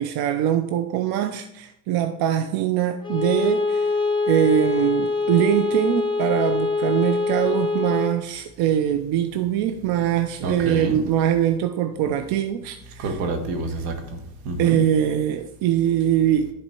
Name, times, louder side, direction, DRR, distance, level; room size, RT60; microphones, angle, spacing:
voice 1, 0.0-3.9 4.3-13.2 14.6-16.5, right 10 dB, 60° right, 8 dB, 0.6 m, -22 dB
Bowed string instrument, 3.0-8.2, left 4 dB, 10° left, 0.6 m, -24 dB
voice 2, 10.4-11.0 13.0-14.8, right 2 dB, 80° right, 4 dB, 1.5 m, -28 dB
10.5 x 4.3 x 4.4 m, 0.85 s
supercardioid pair, 95°, 44 cm